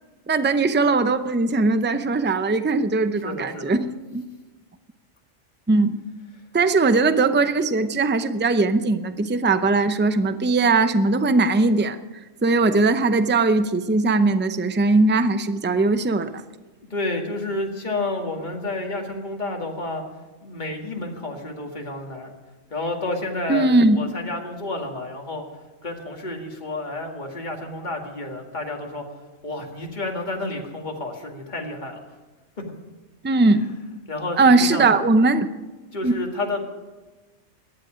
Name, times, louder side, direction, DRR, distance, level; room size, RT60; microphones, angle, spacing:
voice 1, 0.3-4.2 5.7-6.0 6.5-12.0 12.4-16.3 23.5-24.0 33.2-33.7 34.4-35.5 36.0-36.1, right 3 dB, 15° right, 10 dB, 0.3 m, -19 dB
voice 2, 3.2-3.7 16.9-20.0 20.4-22.3 22.7-25.4 25.8-29.0 29.4-32.0 32.6-32.7 33.6-33.7 34.1-34.9 35.9-36.6, left 2 dB, 35° left, 1 dB, 2.2 m, -30 dB
18.0 x 12.0 x 5.1 m, 1.2 s
omnidirectional pair, 1.4 m